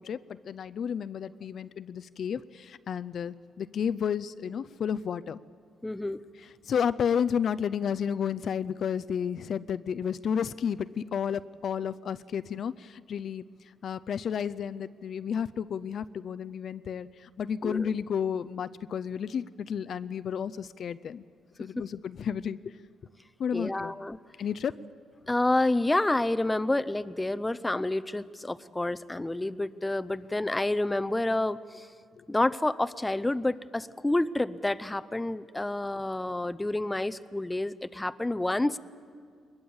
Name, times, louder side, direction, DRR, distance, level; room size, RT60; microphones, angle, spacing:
voice 1, 0.0-5.4 6.6-13.4 13.8-21.2 21.6-22.7 23.4-23.9 24.4-24.7, left 7 dB, 60° left, 13 dB, 0.5 m, -32 dB
voice 2, 5.8-6.2 17.6-17.9 23.5-24.2 25.3-31.9 32.3-38.8, left 2 dB, 10° left, 13 dB, 0.6 m, -29 dB
22.0 x 20.5 x 7.2 m, 2.1 s
cardioid pair, 90°, 0 cm